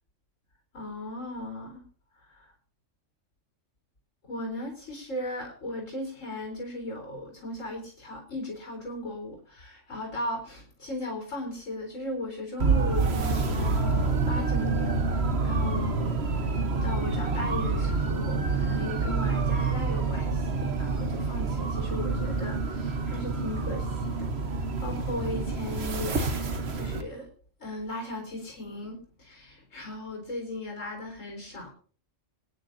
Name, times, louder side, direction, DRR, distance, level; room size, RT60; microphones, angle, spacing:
voice 1, 0.7-1.8 2.2-2.5 4.2-15.2 15.4-16.2 16.5-27.3 27.6-31.7, left 1 dB, 80° left, 1 dB, 4.4 m, -37 dB
sound 1, 12.6-27.0, right 4 dB, 55° right, 1.4 m, -27 dB
25.0 x 9.9 x 2.7 m, 0.42 s
omnidirectional pair, 1.3 m